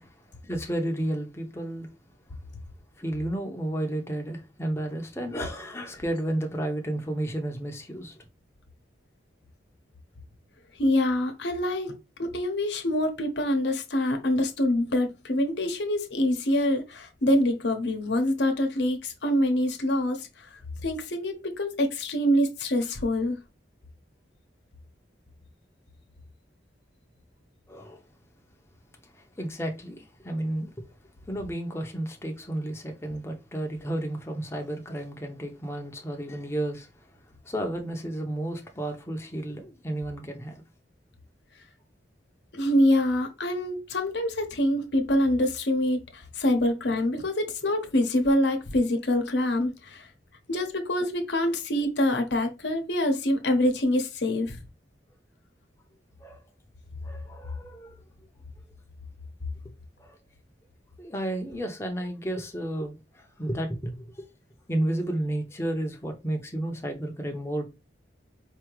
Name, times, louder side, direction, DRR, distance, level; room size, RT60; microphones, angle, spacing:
voice 1, 0.0-1.9 3.0-8.2 27.7-28.0 29.0-30.7 31.3-37.1 37.4-40.6 50.5-50.6 56.2-56.4 57.0-58.0 60.0-60.2 61.0-64.1 64.7-67.7, right 1 dB, 15° left, 0.8 m, -32 dB
voice 2, 10.8-20.3 20.8-23.4 42.5-50.1 50.5-54.6, left 1 dB, 75° left, 1.0 m, -25 dB
4.7 x 2.8 x 3.1 m
head